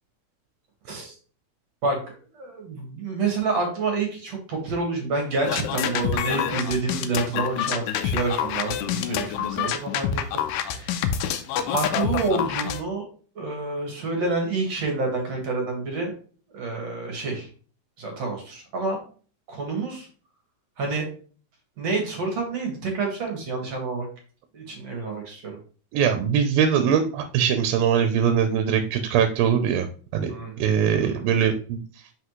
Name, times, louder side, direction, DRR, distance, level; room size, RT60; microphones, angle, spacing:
voice 1, 1.8-10.4 10.7-11.0 11.7-13.1 13.4-16.1 16.5-17.5 18.0-19.0 19.5-20.1 20.8-21.1 21.8-24.1 24.5-25.6 30.3-31.3, right 3 dB, 50° right, 1 dB, 2.6 m, -28 dB
sound 1, 5.4-12.8, left 9 dB, 80° left, 2.2 m, -27 dB
voice 2, 25.9-29.9 30.1-30.3 30.6-31.8, right 8 dB, 90° right, 7 dB, 2.5 m, -21 dB
5.7 x 5.7 x 3.1 m, 0.40 s
omnidirectional pair, 4.0 m